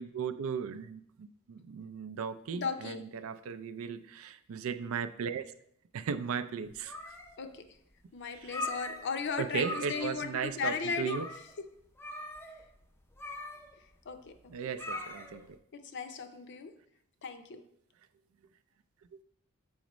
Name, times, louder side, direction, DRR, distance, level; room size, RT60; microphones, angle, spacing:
voice 1, 0.0-5.4 5.9-7.0 8.3-8.7 9.4-11.3 14.5-15.6, right 6 dB, 70° right, 13 dB, 0.4 m, -36 dB
voice 2, 2.5-3.0 7.4-7.6 8.1-11.3 14.1-14.3 14.6-14.7 15.7-16.7 17.2-17.6, left 5 dB, 55° left, 8 dB, 0.6 m, -36 dB
sound 1, 6.7-7.6 7.9-8.0 8.4-9.3 9.6-10.2 10.5-10.6 11.0-11.5 12.0-15.5, left 1 dB, 10° left, 0.5 m, -41 dB
7.1 x 5.0 x 3.0 m, 0.70 s
head